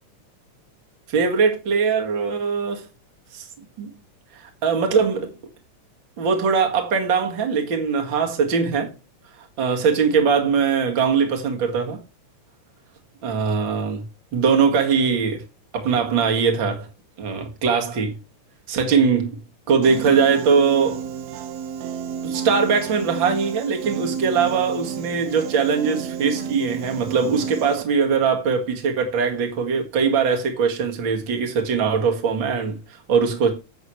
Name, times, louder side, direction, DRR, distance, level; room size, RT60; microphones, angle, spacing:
voice 1, 1.1-2.9 3.3-3.5 3.8-3.9 4.3-5.4 6.2-8.9 9.6-12.0 13.2-14.0 14.3-15.4 15.7-16.9 17.2-18.2 18.7-19.4 19.7-21.0 22.2-32.8 33.1-33.6, right 5 dB, 45° right, 2.4 m, -21 dB
Piano, 19.8-27.8, right 7 dB, 70° right, 2.1 m, -31 dB
11.0 x 7.9 x 3.1 m
omnidirectional pair, 3.4 m